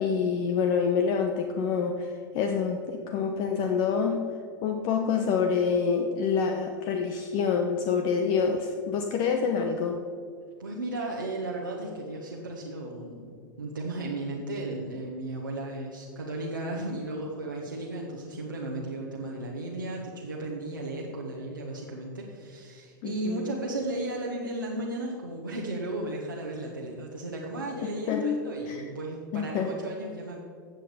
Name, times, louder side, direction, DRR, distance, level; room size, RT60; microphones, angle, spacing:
voice 1, 0.0-4.3 4.6-10.0 23.0-23.6 28.1-28.8 29.3-29.7, left 6 dB, 45° left, 5 dB, 0.9 m, -27 dB
voice 2, 10.6-30.4, right 2 dB, 85° right, -4 dB, 1.5 m, -35 dB
15.0 x 7.8 x 5.1 m, 2.1 s
figure-of-eight pair, 90°, 11 cm